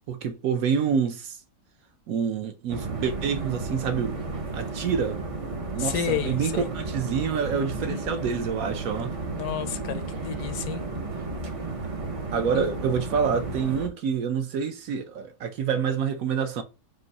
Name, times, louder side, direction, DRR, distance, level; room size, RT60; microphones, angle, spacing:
voice 1, 0.1-1.4 2.1-4.2 4.5-5.2 5.7-9.1 12.3-16.6, right 6 dB, 70° right, 1.1 m, -27 dB
sound 1, 2.7-13.9, right 3 dB, 45° right, 0.4 m, -33 dB
voice 2, 5.8-6.7 7.8-8.7 9.3-10.9 12.5-12.7, left 10 dB, 75° left, 1.1 m, -32 dB
3.8 x 2.6 x 4.0 m
omnidirectional pair, 1.7 m